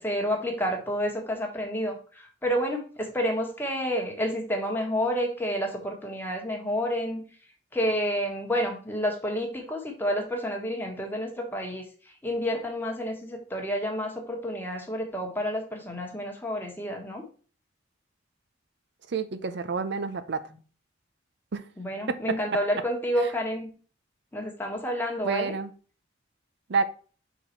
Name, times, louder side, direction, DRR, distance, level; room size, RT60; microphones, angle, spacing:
voice 1, 0.0-7.2 7.7-17.2 20.5-20.6 21.8-23.7 24.3-25.5, equal, 10° left, 2 dB, 1.4 m, -29 dB
voice 2, 19.1-20.4 21.5-21.6 25.2-25.7 26.7-26.8, right 4 dB, 60° right, 10 dB, 0.5 m, -28 dB
5.9 x 4.1 x 4.4 m, 0.39 s
head